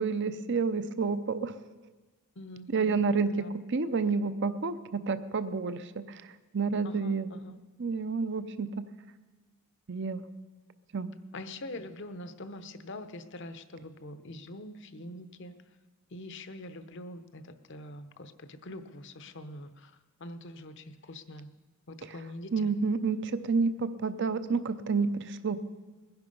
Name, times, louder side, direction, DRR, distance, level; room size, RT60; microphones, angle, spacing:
voice 1, 0.0-1.6 2.7-3.3 3.7-6.2 6.5-7.3 7.8-8.9 9.9-10.2 10.9-11.1 22.5-25.6, right 4 dB, 55° right, 12 dB, 0.7 m, -29 dB
voice 2, 2.4-3.5 6.8-7.6 11.3-15.5 16.1-21.5 21.9-22.7, left 1 dB, 60° left, 10 dB, 0.9 m, -44 dB
20.5 x 10.5 x 5.4 m, 1.2 s
head